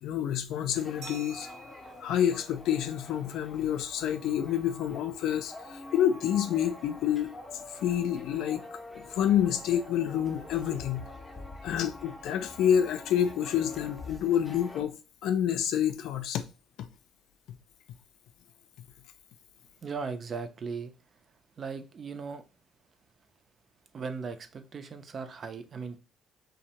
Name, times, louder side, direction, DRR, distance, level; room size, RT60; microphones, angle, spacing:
voice 1, 0.0-1.5 2.0-7.3 7.8-8.6 8.9-11.0 11.6-14.9 15.2-16.4 16.8-16.9, left 9 dB, 80° left, 0.3 m, -28 dB
sound 1, 0.7-14.8, left 2 dB, 15° left, 0.5 m, -46 dB
Glass, 1.0-3.5, right 3 dB, 75° right, 0.7 m, -50 dB
voice 2, 19.8-20.9 21.6-22.4 23.9-26.0, right 5 dB, 40° right, 0.4 m, -37 dB
2.5 x 2.1 x 2.8 m
cardioid pair, 110°, 0 cm